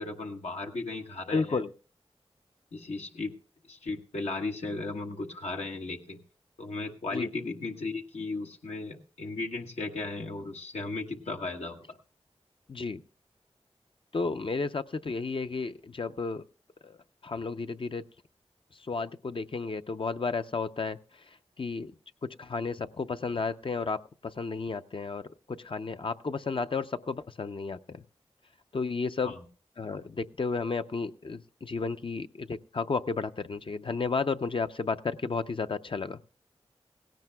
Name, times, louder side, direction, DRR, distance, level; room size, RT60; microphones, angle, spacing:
voice 1, 0.0-1.6 2.7-3.3 3.7-6.2 6.6-11.8 29.2-29.3, left 3 dB, 90° left, 2 dB, 1.1 m, -36 dB
voice 2, 1.3-1.7 7.1-7.3 12.7-13.0 14.1-16.4 16.8-17.0 17.2-18.0 18.9-21.0 21.6-21.9 22.2-28.0 28.7-29.3 29.8-36.2, left 4 dB, 55° left, 9 dB, 0.5 m, -32 dB
17.0 x 16.5 x 2.2 m, 0.36 s
wide cardioid pair, 50°, 11 cm